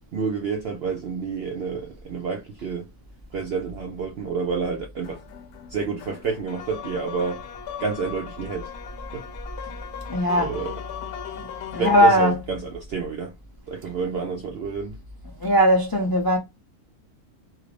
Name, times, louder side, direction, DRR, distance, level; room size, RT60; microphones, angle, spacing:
voice 1, 0.1-2.9 3.3-5.2 5.7-7.4 7.8-8.7 9.1-9.3 10.4-10.8 11.8-13.3 13.7-15.0, right 5 dB, 70° right, 0.6 m, -29 dB
sound 1, 5.0-12.3, left 9 dB, 90° left, 1.1 m, -37 dB
voice 2, 10.1-10.5 11.4-12.6 15.4-16.4, equal, 35° left, 0.3 m, -20 dB
2.8 x 2.4 x 3.2 m
omnidirectional pair, 1.6 m